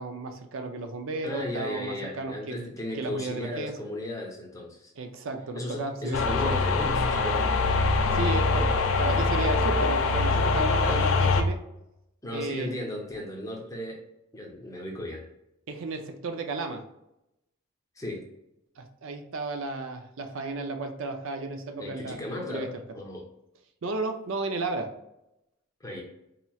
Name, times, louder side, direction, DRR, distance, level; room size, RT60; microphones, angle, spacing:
voice 1, 0.0-2.7 2.9-3.8 5.0-6.6 8.1-11.6 12.3-12.7 15.7-16.9 18.8-22.8 23.8-24.9, right 3 dB, 65° right, 6 dB, 0.5 m, -34 dB
voice 2, 1.2-4.9 5.5-7.5 10.8-11.1 12.2-14.0 14.3-15.3 18.0-18.2 21.8-22.7 22.9-23.2 25.8-26.0, left 1 dB, 15° left, -1 dB, 0.7 m, -35 dB
sound 1, 6.1-11.4, left 3 dB, 65° left, 0.4 m, -24 dB
4.2 x 2.9 x 2.3 m, 0.86 s
head